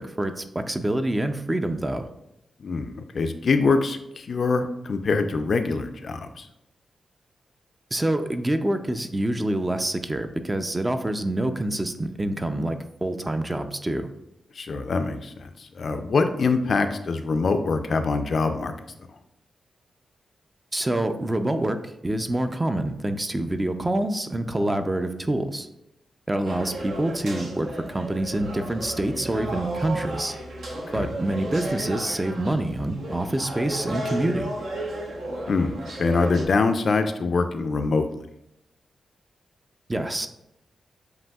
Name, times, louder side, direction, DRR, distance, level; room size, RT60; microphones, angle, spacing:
voice 1, 0.0-2.1 7.9-14.1 20.7-25.7 26.3-30.4 30.9-34.5 39.9-40.3, right 1 dB, 15° right, 7 dB, 0.4 m, -26 dB
voice 2, 2.6-6.5 14.6-18.7 30.9-31.1 35.5-38.2, left 4 dB, 55° left, 8 dB, 0.4 m, -24 dB
sound 1, 26.5-36.4, right 1 dB, 80° right, 0.9 m, -34 dB
7.6 x 2.7 x 2.3 m, 0.83 s
wide cardioid pair, 110°, 0 cm